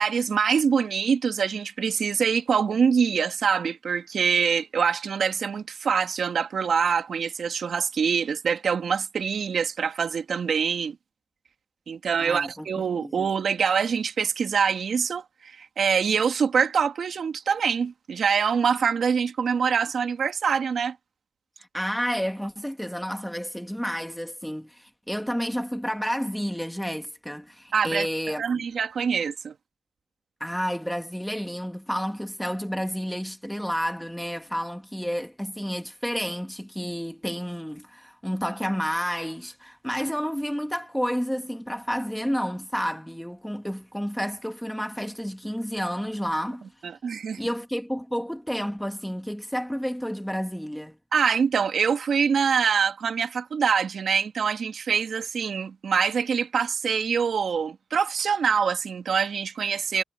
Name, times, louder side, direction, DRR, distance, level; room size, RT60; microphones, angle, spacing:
voice 1, 0.0-11.0 11.9-21.0 27.7-29.5 46.8-47.4 51.1-60.0, right 6 dB, 75° right, 2.3 m, -25 dB
voice 2, 12.2-12.7 13.0-13.2 21.7-28.4 30.4-46.6 47.4-51.0, equal, ahead, 1.7 m, -30 dB
wide cardioid pair, 105°, 0 cm